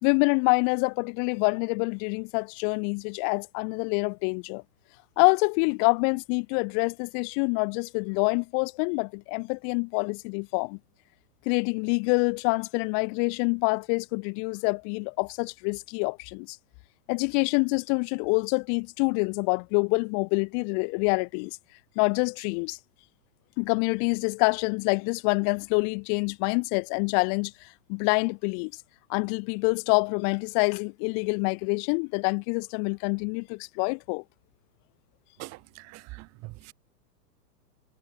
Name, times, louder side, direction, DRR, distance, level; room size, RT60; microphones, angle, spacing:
voice 1, 0.0-4.6 5.2-10.8 11.5-16.6 17.1-21.5 22.0-22.8 23.6-27.5 27.9-28.7 29.1-34.2, left 40 dB or more, 40° left, 3.7 m, -26 dB
voice 2, 35.4-36.7, right 22 dB, 30° right, 3.0 m, -43 dB
hypercardioid pair, 145°, 49 cm